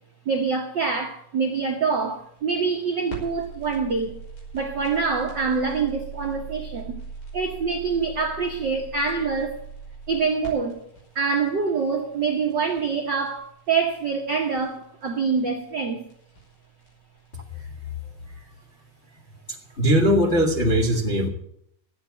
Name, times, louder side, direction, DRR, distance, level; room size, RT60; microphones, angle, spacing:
voice 1, 0.2-4.1 4.5-7.0 7.3-9.6 10.1-10.8 11.1-16.0, right 5 dB, 60° right, 1.1 m, -25 dB
sound 1, 2.1-17.3, right 4 dB, 70° left, 7.0 m, -42 dB
voice 2, 19.8-21.3, equal, 30° left, 1.3 m, -20 dB
13.5 x 8.5 x 8.3 m
omnidirectional pair, 3.9 m